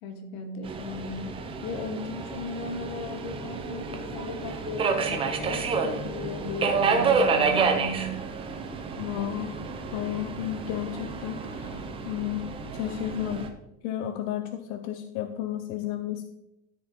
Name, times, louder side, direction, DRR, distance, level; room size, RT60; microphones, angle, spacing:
voice 1, 0.0-8.2 12.8-13.0, left 2 dB, 65° left, 6 dB, 1.8 m, -36 dB
Subway metro underground, 0.6-13.5, right 5 dB, 15° right, 0.4 m, -29 dB
voice 2, 9.0-9.6 9.9-12.5 12.7-13.4 13.8-16.3, left 11 dB, 40° left, 7 dB, 0.6 m, -32 dB
13.0 x 4.7 x 3.9 m, 0.89 s
supercardioid pair, 160°, 44 cm